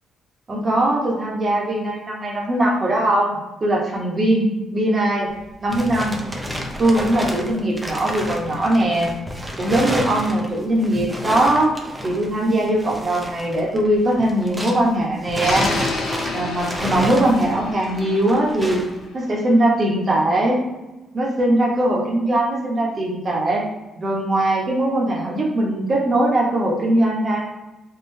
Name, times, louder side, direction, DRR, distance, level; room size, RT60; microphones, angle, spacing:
voice 1, 0.5-5.3 5.6-6.2 6.8-9.1 9.6-11.7 12.0-15.7 16.3-18.8 19.1-20.6 21.1-23.6 24.0-27.4, right 1 dB, 35° right, -2 dB, 0.9 m, -20 dB
sound 1, 5.3-14.9 15.2-19.0, equal, 15° right, 0.5 m, -30 dB
sound 2, 15.4-19.5, left 3 dB, 80° left, 0.6 m, -31 dB
3.8 x 2.3 x 2.7 m, 1.0 s
cardioid pair, 90°, 0 cm